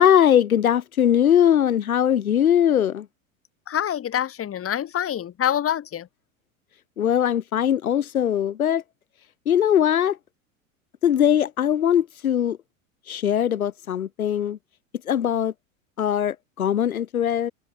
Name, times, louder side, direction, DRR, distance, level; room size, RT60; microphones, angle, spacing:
voice 1, 0.0-3.0 7.0-8.8 9.4-10.2 11.0-12.6 13.1-14.6 15.1-15.5 16.0-17.5, left 10 dB, 85° left, 1.7 m, -20 dB
voice 2, 3.7-6.1, left 10 dB, 35° left, 5.3 m, -26 dB
open air
hypercardioid pair, 90°, 42 cm